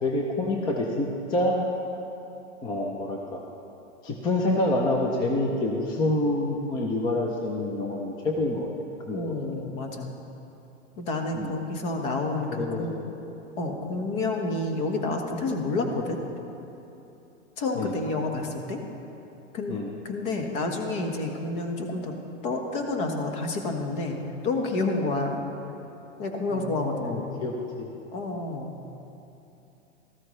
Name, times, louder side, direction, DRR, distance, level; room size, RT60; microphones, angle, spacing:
voice 1, 0.0-1.6 2.6-3.4 4.0-8.7 9.1-9.2 11.3-11.5 12.5-13.1 17.8-18.0 19.7-19.9 26.5-27.9, left 2 dB, 10° left, 1 dB, 0.5 m, -27 dB
voice 2, 9.1-10.1 11.0-12.9 13.6-16.2 17.6-18.8 19.5-19.8 20.0-22.1 22.4-24.2 24.4-25.4 26.2-27.4 28.1-28.7, left 2 dB, 45° left, 3 dB, 1.5 m, -29 dB
13.5 x 13.0 x 3.3 m, 3.0 s
hypercardioid pair, 140°, 38 cm